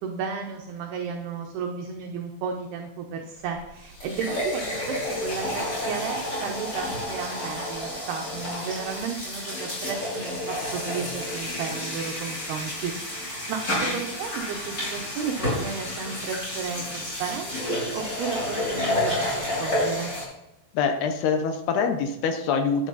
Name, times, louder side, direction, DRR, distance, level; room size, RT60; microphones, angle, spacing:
voice 1, 0.0-4.6 4.9-20.1, right 6 dB, 75° right, 2 dB, 2.5 m, -33 dB
sound 1, 3.5-3.6 3.9-20.2, left 1 dB, 20° left, 5.3 m, -30 dB
voice 2, 20.7-22.9, left 5 dB, 75° left, 6 dB, 2.5 m, -25 dB
12.0 x 9.3 x 4.1 m, 0.90 s
omnidirectional pair, 5.5 m